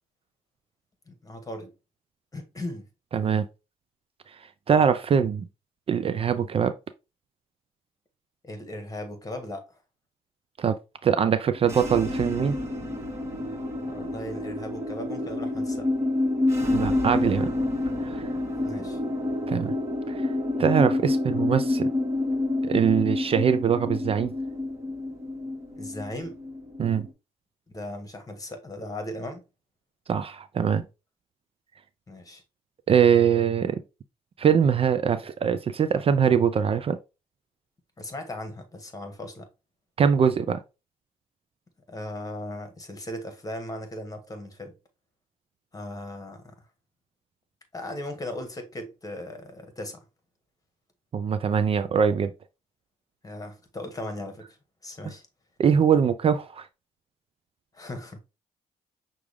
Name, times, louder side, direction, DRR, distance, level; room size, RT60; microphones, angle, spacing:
voice 1, 1.1-1.7 2.3-2.9 8.4-9.8 13.8-15.9 18.6-19.0 25.8-26.4 27.7-29.4 32.1-32.4 38.0-39.5 41.9-44.7 45.7-46.5 47.7-50.0 53.2-54.6 54.8-55.3 57.7-58.2, left 1 dB, 25° left, 1.6 m, -37 dB
voice 2, 3.1-3.5 4.7-5.5 5.9-6.7 10.6-10.8 11.0-12.5 16.7-17.5 18.0-18.3 19.5-19.7 20.1-20.3 20.6-21.9 22.6-24.3 26.8-27.1 30.1-30.8 32.9-33.8 34.4-37.0 40.0-40.6 51.1-52.3 55.6-56.7, right 7 dB, 40° right, 0.4 m, -22 dB
sound 1, 11.6-27.1, left 2 dB, 20° right, 1.6 m, -28 dB
5.9 x 2.5 x 3.4 m
cardioid pair, 75°, 15 cm